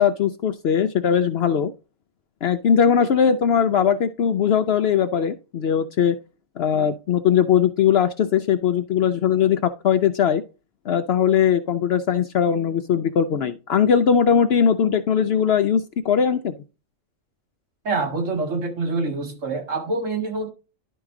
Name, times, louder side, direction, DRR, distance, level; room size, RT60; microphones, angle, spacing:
voice 1, 0.0-1.7 2.4-6.2 6.6-10.4 10.9-16.6, left 8 dB, 65° left, 0.7 m, -20 dB
voice 2, 17.8-20.5, right 3 dB, 70° right, 2.1 m, -26 dB
11.0 x 4.7 x 3.7 m
omnidirectional pair, 1.4 m